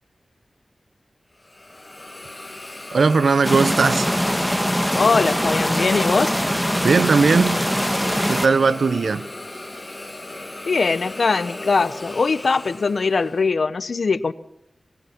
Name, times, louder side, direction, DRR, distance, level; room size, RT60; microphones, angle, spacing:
Hiss, 1.4-13.5, left 2 dB, 25° left, 2.4 m, -36 dB
voice 1, 2.9-4.2 6.8-7.6 8.3-9.3, right 4 dB, 85° right, 0.7 m, -18 dB
sound 1, 3.4-8.5, equal, ahead, 1.9 m, -22 dB
voice 2, 4.9-6.3 10.7-14.3, left 4 dB, 75° left, 1.0 m, -21 dB
23.0 x 19.5 x 6.1 m
cardioid pair, 50°, 0 cm